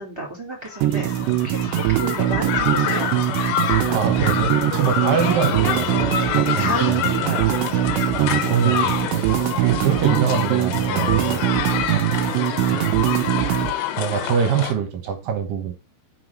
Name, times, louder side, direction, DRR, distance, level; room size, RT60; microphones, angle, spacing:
voice 1, 0.0-3.3 6.5-7.5 8.1-8.6 9.3-9.7, right 1 dB, 5° right, 3.1 m, -32 dB
sound 1, 0.7-14.7, left 8 dB, 80° left, 3.3 m, -27 dB
sound 2, 0.8-13.7, right 14 dB, 85° right, 2.9 m, -22 dB
voice 2, 3.9-7.0 8.1-11.4 12.7-13.1 13.4-13.6 14.0-15.7, right 7 dB, 65° right, 2.6 m, -24 dB
6.2 x 5.9 x 6.1 m
omnidirectional pair, 5.1 m